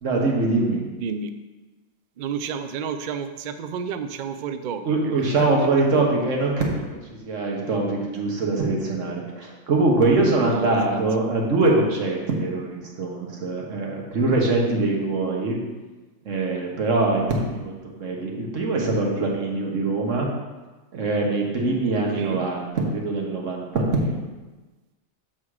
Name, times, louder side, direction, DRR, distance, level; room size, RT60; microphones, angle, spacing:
voice 1, 0.0-0.8 4.8-15.6 16.2-20.3 20.9-24.2, right 2 dB, 70° right, -1 dB, 1.6 m, -23 dB
voice 2, 0.8-1.3 2.2-6.3 10.4-11.0 22.1-22.5, right 6 dB, 85° right, 9 dB, 0.4 m, -32 dB
7.2 x 4.1 x 4.8 m, 1.2 s
omnidirectional pair, 1.4 m